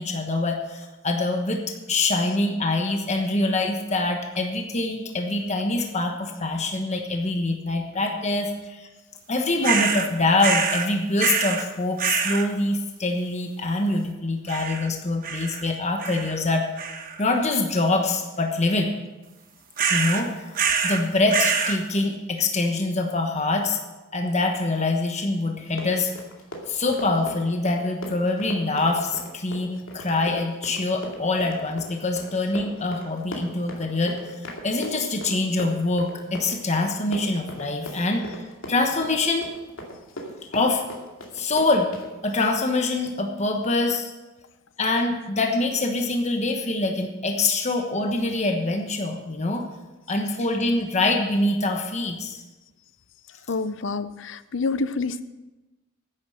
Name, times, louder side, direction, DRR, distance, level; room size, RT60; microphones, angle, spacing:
voice 1, 0.0-1.6 1.9-8.9 9.3-16.7 17.2-18.9 19.9-20.6 20.8-23.8 24.1-26.1 26.7-39.5 40.5-40.8 41.3-42.0 42.2-44.1 44.8-49.7 50.1-52.4, left 2 dB, 35° left, 3 dB, 1.2 m, -24 dB
sound 1, 9.6-10.1 10.4-10.9 11.2-11.6 12.0-12.5 14.5-14.9 15.2-15.6 16.0-16.4 16.8-17.2 19.8-20.2 20.6-21.0 21.3-21.8, right 6 dB, 45° right, 1.1 m, -25 dB
Run, 25.6-42.1, equal, 85° left, 2.4 m, -38 dB
voice 2, 53.5-55.2, left 3 dB, 65° left, 14 dB, 0.6 m, -27 dB
10.5 x 9.6 x 6.5 m, 1.1 s
head